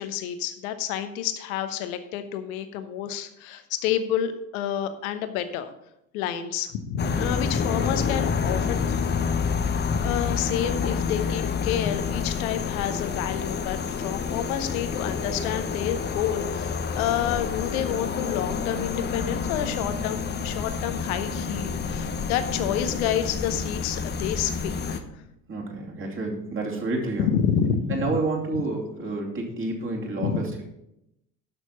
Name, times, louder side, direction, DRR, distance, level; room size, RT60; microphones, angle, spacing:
voice 1, 0.0-5.7 6.1-9.3 10.0-25.0 27.2-28.1 30.2-30.4, left 9 dB, 60° left, 9 dB, 1.1 m, -29 dB
sound 1, 7.0-25.0, left 6 dB, 20° left, 0.8 m, -28 dB
voice 2, 25.5-27.3 27.9-30.6, right 2 dB, 25° right, -1 dB, 2.7 m, -29 dB
12.0 x 6.2 x 4.3 m, 0.83 s
figure-of-eight pair, 60°, 49 cm